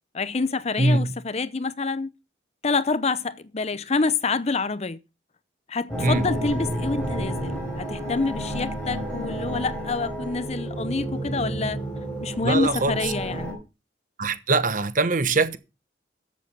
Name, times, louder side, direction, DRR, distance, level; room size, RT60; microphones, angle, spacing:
voice 1, 0.1-2.1 2.6-5.0 5.7-11.8 12.2-13.6, left 4 dB, 35° left, 0.6 m, -27 dB
voice 2, 0.8-1.1 6.0-6.3 12.4-13.1 14.2-15.6, right 3 dB, 45° right, 1.1 m, -22 dB
sound 1, 5.9-13.5, right 1 dB, 5° left, 5.2 m, -31 dB
14.0 x 7.6 x 5.4 m
head